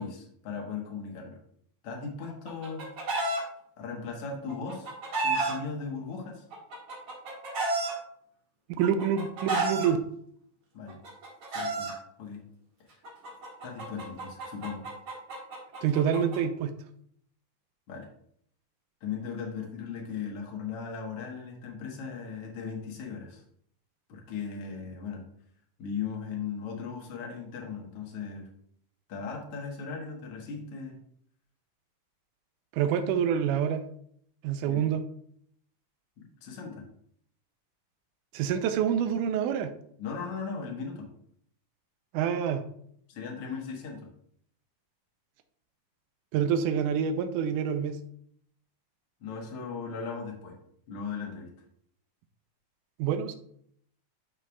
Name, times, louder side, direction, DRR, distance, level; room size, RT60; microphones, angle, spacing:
voice 1, 0.0-1.4 1.8-2.9 3.8-4.9 5.2-6.4 10.7-11.0 11.5-11.9 12.2-12.4 13.6-14.9 17.9-18.1 19.0-23.4 24.1-25.2 25.8-28.5 29.1-31.0 34.7-34.8 36.2-36.8 40.0-41.1 43.1-44.1 49.2-50.6 50.9-51.5, left 5 dB, 55° left, 0 dB, 2.0 m, -37 dB
Chicken rooster, 2.3-3.4 4.5-5.5 6.5-7.9 8.8-9.9 10.9-11.9 13.0-16.4, right 2 dB, 50° right, 2.7 m, -31 dB
voice 2, 8.8-10.0 15.8-16.7 32.7-33.8 34.4-35.0 38.3-39.7 42.1-42.6 46.3-48.0 53.0-53.4, right 8 dB, 85° right, 8 dB, 2.1 m, -27 dB
11.0 x 5.4 x 2.4 m, 0.67 s
omnidirectional pair, 3.7 m